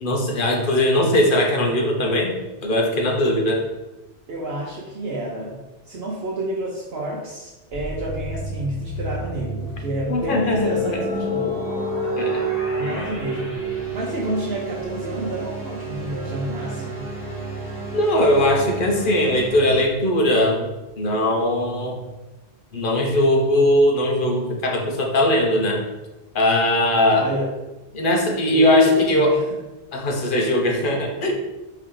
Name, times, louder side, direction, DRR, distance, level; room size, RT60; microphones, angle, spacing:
voice 1, 0.0-2.3 2.6-3.6 10.1-11.0 12.2-12.5 12.8-13.1 17.9-20.6 21.0-22.0 22.7-25.8 26.3-27.3 27.9-29.3 29.9-31.3, left 1 dB, 50° left, 2 dB, 0.8 m, -20 dB
voice 2, 4.3-5.6 5.9-11.6 12.7-13.7 13.9-17.1 27.2-27.5 28.5-29.4, right 1 dB, 60° right, -3 dB, 0.9 m, -29 dB
sound 1, 7.7-19.8, right 2 dB, 70° left, 2.1 m, -34 dB
sound 2, 9.1-20.6, right 1 dB, 35° left, 1.6 m, -31 dB
4.6 x 2.8 x 3.7 m, 1.1 s
omnidirectional pair, 1.2 m